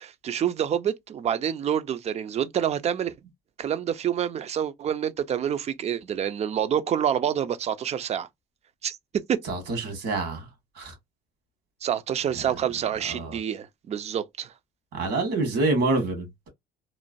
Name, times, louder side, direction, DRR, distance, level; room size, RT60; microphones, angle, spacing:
voice 1, 0.0-3.1 3.6-8.3 8.8-9.4 11.8-14.5, right 9 dB, 40° right, 0.4 m, -27 dB
voice 2, 9.5-10.5 10.7-10.9 13.1-13.4 14.9-16.5, right 3 dB, 80° right, 1.6 m, -27 dB
3.0 x 2.2 x 2.5 m
cardioid pair, 110°, 17 cm